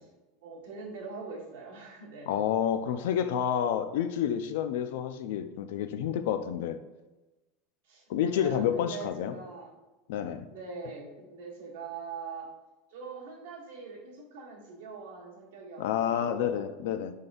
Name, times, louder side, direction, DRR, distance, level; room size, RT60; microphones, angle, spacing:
voice 1, 0.4-2.3 7.8-9.8 10.5-12.5 12.9-16.6, right 4 dB, 85° right, -3 dB, 1.4 m, -42 dB
voice 2, 2.3-6.8 8.1-9.4 10.1-10.5 15.8-17.1, left 9 dB, 70° left, 10 dB, 0.3 m, -29 dB
5.1 x 3.9 x 2.5 m, 1.1 s
supercardioid pair, 165°, 0 cm